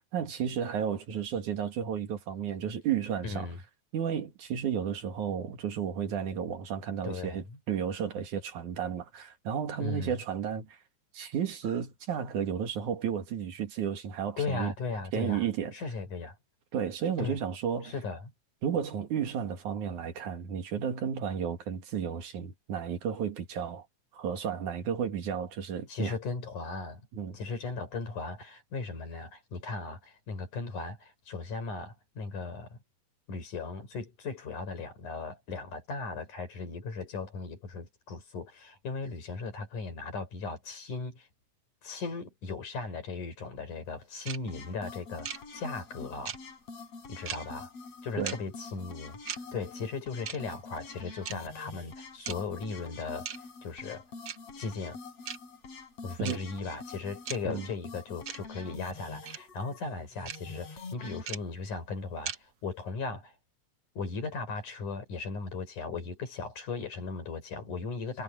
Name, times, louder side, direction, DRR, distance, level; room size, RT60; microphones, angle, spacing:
voice 1, 0.0-3.5 3.9-10.8 11.1-14.7 15.1-15.7 16.7-17.9 18.6-23.9 24.1-26.2 27.1-27.4 48.2-48.4 56.2-56.4 57.5-57.7, right 8 dB, 80° right, 3.7 m, -33 dB
voice 2, 3.2-3.6 7.0-7.6 9.8-10.1 14.4-15.5 15.7-16.3 17.2-17.4 17.8-18.3 25.9-27.1 27.3-32.8 33.3-41.3 41.8-46.4 47.1-47.7 48.0-53.3 53.6-54.0 54.6-55.0 56.0-63.3 64.0-68.2, left 4 dB, 80° left, 6.5 m, -37 dB
sound 1, 44.3-44.4 45.2-45.4 46.3-46.4 47.3-47.4 48.3-48.4 49.3-49.4 50.3-50.4 51.3-51.4 52.3-52.4 53.3-53.4 54.3-54.4 55.3-55.4 56.2-56.4 57.3-57.4 58.3-58.4 59.3-59.4 60.3-60.4 61.3-61.4 62.3-62.4, right 8 dB, 60° right, 1.1 m, -36 dB
sound 2, 44.5-61.2, left 4 dB, 55° left, 5.7 m, -46 dB
omnidirectional pair, 3.5 m